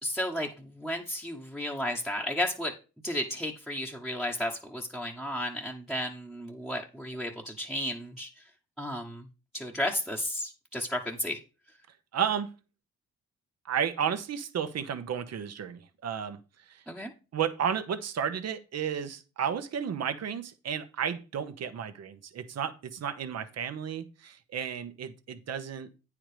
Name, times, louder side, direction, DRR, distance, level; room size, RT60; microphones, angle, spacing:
voice 1, 0.0-2.7 3.0-8.5 8.8-9.3 9.5-11.4 16.9-17.1, left 1 dB, ahead, -3 dB, 1.2 m, -33 dB
voice 2, 12.1-12.5 13.6-16.4 16.7-16.8 17.3-25.9, right 8 dB, 55° right, 10 dB, 1.2 m, -32 dB
9.1 x 4.8 x 5.0 m, 0.32 s
cardioid pair, 90°, 30 cm